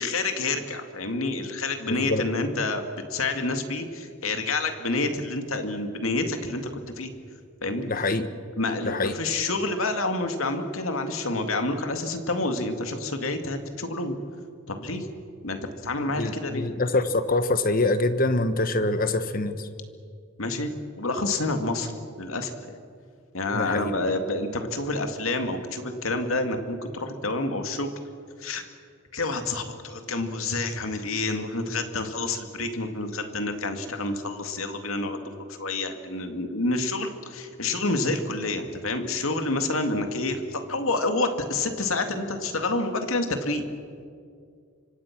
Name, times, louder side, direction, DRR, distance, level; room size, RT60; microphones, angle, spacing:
voice 1, 0.0-2.8 3.1-7.1 7.6-7.9 8.6-14.2 14.7-15.1 15.4-16.7 20.4-20.7 21.0-21.9 22.2-22.8 23.3-27.9 28.4-28.6 29.1-43.6, left 2 dB, 80° left, 6 dB, 2.4 m, -28 dB
voice 2, 1.9-2.2 7.9-8.3 8.8-9.1 16.2-19.7 23.5-23.9, left 2 dB, 45° left, 10 dB, 1.3 m, -25 dB
26.5 x 24.5 x 6.1 m, 2.2 s
head